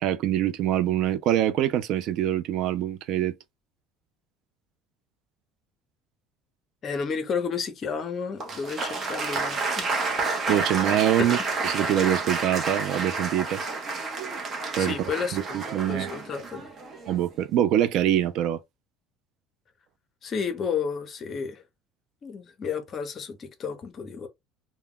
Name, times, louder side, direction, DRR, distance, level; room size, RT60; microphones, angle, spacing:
voice 1, 0.0-3.4 10.5-11.4 11.6-13.6 14.8-14.9 15.3-16.1 17.1-18.6, right 11 dB, 60° right, 0.3 m, -24 dB
voice 2, 6.8-9.9 11.2-11.4 14.8-15.4 15.8-16.7 20.2-21.6 22.2-24.3, left 6 dB, 35° left, 0.6 m, -31 dB
Applause, 8.4-17.3, right 3 dB, 35° right, 0.7 m, -30 dB
2.2 x 2.1 x 3.5 m
cardioid pair, 130°, 0 cm